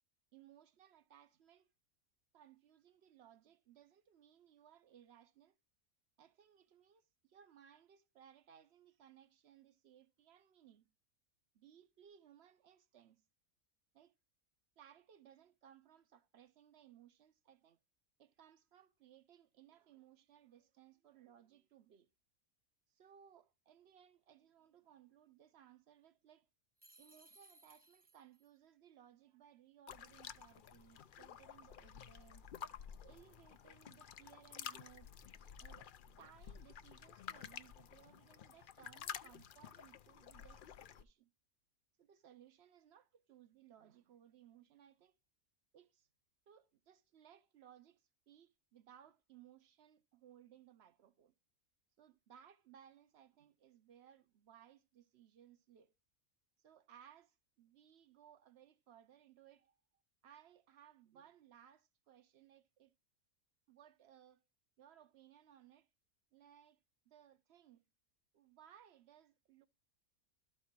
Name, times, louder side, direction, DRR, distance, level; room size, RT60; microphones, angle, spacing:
voice 1, 0.3-1.7 2.3-5.6 6.2-10.9 11.5-13.2 13.9-14.1 14.8-17.8 18.2-22.1 22.9-26.5 27.0-32.5 33.0-35.1 35.6-35.9 36.2-41.3 42.0-45.2 45.7-46.1 46.5-51.3 52.0-55.9 56.6-59.8 60.2-62.9 63.7-64.4 64.8-65.9 66.3-66.8 67.1-67.9 68.3-69.7, right 10 dB, 60° right, 0.7 m, -63 dB
sound 1, 26.8-28.5, right 2 dB, 10° right, 0.6 m, -64 dB
sound 2, 29.9-41.0, left 8 dB, 70° left, 0.4 m, -52 dB
12.5 x 4.3 x 4.5 m
omnidirectional pair, 1.5 m